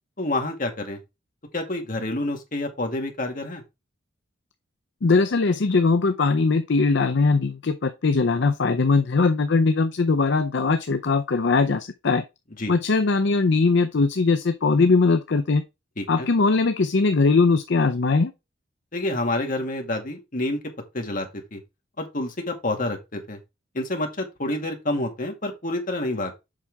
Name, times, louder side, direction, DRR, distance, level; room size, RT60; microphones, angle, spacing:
voice 1, 0.2-1.0 1.5-3.6 12.6-12.7 16.0-16.3 18.9-20.6 20.9-21.6 22.0-23.4 23.7-26.4, left 1 dB, 45° left, 2.0 m, -28 dB
voice 2, 5.0-12.2 12.7-15.6 16.1-18.3, left 4 dB, 60° left, 0.6 m, -20 dB
7.4 x 5.6 x 3.5 m
head